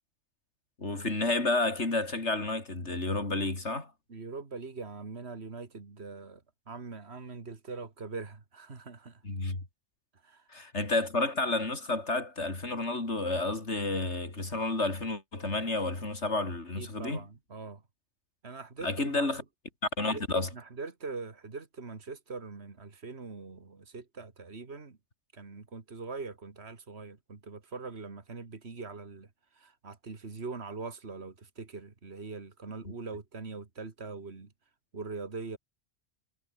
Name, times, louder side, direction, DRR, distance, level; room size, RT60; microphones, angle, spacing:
voice 1, 0.8-3.9 9.2-9.6 10.5-17.2 18.8-19.4 20.0-20.5 32.8-32.9, left 2 dB, 75° left, 4.4 m, -30 dB
voice 2, 4.1-9.2 10.1-10.5 16.8-17.8 18.4-19.3 20.0-20.2 20.5-25.0 25.3-34.5 34.9-35.6, right 4 dB, 65° right, 2.6 m, -42 dB
omnidirectional pair, 1.2 m